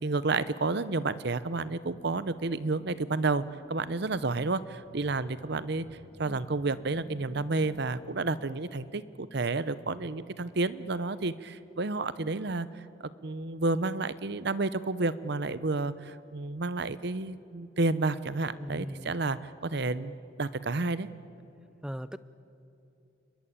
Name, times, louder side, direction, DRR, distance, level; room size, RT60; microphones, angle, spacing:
voice 1, 0.0-3.4 3.7-5.9 6.2-12.7 13.2-21.1, right 3 dB, 55° right, 15 dB, 0.8 m, -30 dB
sound 1, 2.0-8.5, right 1 dB, 25° right, 3.1 m, -55 dB
voice 2, 18.6-19.1 21.8-22.2, equal, 5° right, 14 dB, 0.5 m, -38 dB
30.0 x 21.5 x 8.7 m, 2.8 s
head